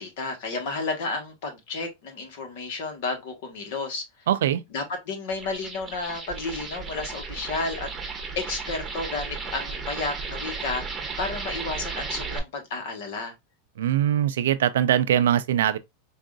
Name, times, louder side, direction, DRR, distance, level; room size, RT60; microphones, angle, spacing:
voice 1, 0.0-4.0 4.7-7.9 8.3-13.3, left 3 dB, 65° left, 1.4 m, -32 dB
voice 2, 4.3-4.6 13.8-15.8, right 10 dB, 85° right, 0.4 m, -22 dB
sound 1, 5.3-12.4, right 4 dB, 20° right, 0.9 m, -34 dB
4.7 x 2.5 x 2.4 m
hypercardioid pair, 120°, 0 cm